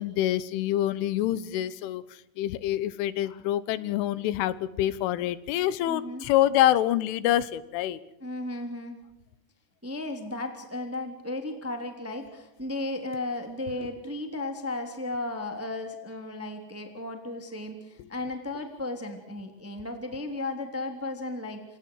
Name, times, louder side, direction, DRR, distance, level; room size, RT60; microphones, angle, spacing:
voice 1, 0.0-8.0 13.8-13.9 18.0-18.1, left 13 dB, 90° left, 16 dB, 3.6 m, -26 dB
voice 2, 5.9-6.2 8.2-9.0 9.8-21.6, left 2 dB, 5° right, 5 dB, 2.0 m, -35 dB
29.0 x 25.5 x 4.8 m, 0.86 s
omnidirectional pair, 5.4 m